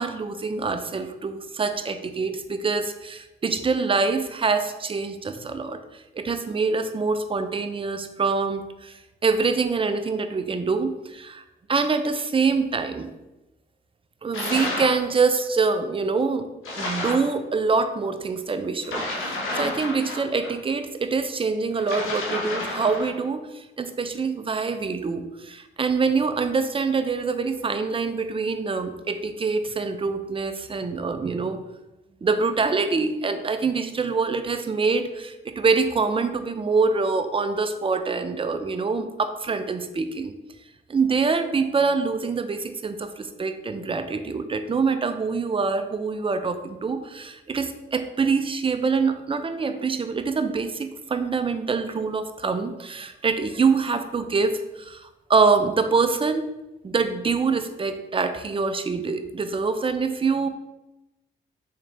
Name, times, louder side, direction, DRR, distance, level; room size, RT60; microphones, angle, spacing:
voice 1, 0.0-5.8 6.2-11.4 11.7-13.1 14.2-16.5 16.8-31.6 32.2-40.3 40.9-55.0 55.3-56.5 56.8-60.5, right 4 dB, 25° right, 8 dB, 0.5 m, -25 dB
sound 1, 14.3-15.0 16.6-17.3 18.8-20.5 21.8-23.2, left 2 dB, 75° left, 1.1 m, -30 dB
3.7 x 3.2 x 3.3 m, 0.98 s
supercardioid pair, 50°, 21 cm